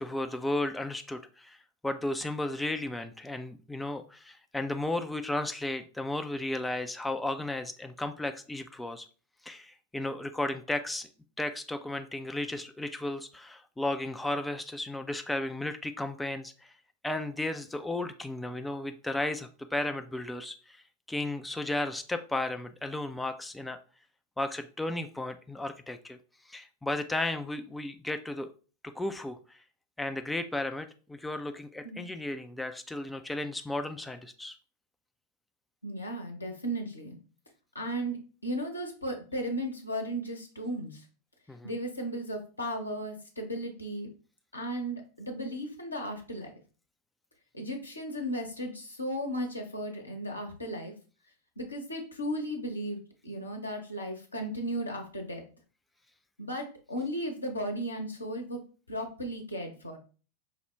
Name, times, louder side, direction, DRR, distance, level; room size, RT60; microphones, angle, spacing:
voice 1, 0.0-1.6 1.8-9.1 9.4-11.1 11.4-16.7 17.0-20.8 21.1-23.8 24.4-26.2 26.5-28.5 29.0-29.4 30.0-34.6 41.5-41.7, left 2 dB, 5° left, 7 dB, 0.3 m, -34 dB
voice 2, 35.8-37.2 37.7-41.0 41.6-44.1 44.5-46.5 47.5-50.9 51.6-55.4 56.4-58.6 58.9-60.0, equal, 80° left, 2 dB, 0.9 m, -35 dB
5.4 x 2.1 x 3.3 m, 0.37 s
figure-of-eight pair, 90°, 0 cm